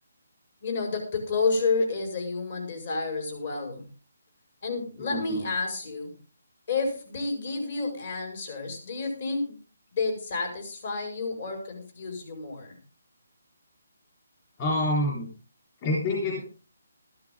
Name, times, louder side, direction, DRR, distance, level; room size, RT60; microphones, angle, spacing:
voice 1, 0.6-3.9 4.6-6.1 6.7-9.6 9.9-12.8, left 4 dB, 45° left, 4 dB, 5.4 m, -30 dB
voice 2, 5.0-5.4 14.6-15.3 15.8-16.4, left 1 dB, 25° left, -3 dB, 3.8 m, -27 dB
13.5 x 13.5 x 3.7 m, 0.36 s
hypercardioid pair, 170°, 0 cm